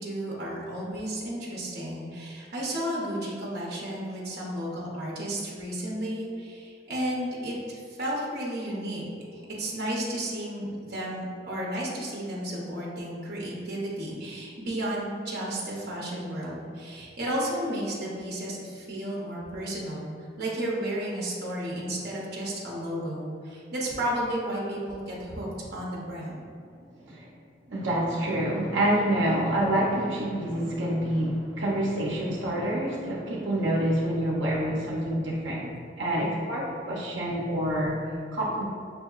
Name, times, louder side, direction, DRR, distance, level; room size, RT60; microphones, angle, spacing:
voice 1, 0.0-9.0 9.3-26.4, right 1 dB, 55° right, -4 dB, 0.8 m, -33 dB
voice 2, 27.7-38.0 38.3-38.7, right 1 dB, 90° right, -4 dB, 0.6 m, -27 dB
6.1 x 2.7 x 2.3 m, 2.3 s
head